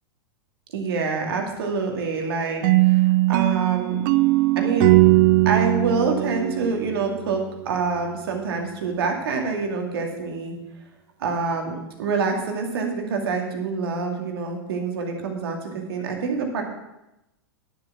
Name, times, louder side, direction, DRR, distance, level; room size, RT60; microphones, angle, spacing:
voice 1, 0.7-4.0 4.6-5.0 5.4-10.5 11.2-16.6, right 4 dB, 70° right, 2 dB, 2.4 m, -26 dB
sound 1, 2.6-7.5, right 20 dB, 50° right, 0.5 m, -19 dB
10.5 x 7.5 x 6.1 m, 0.93 s
hypercardioid pair, 105°, 13 cm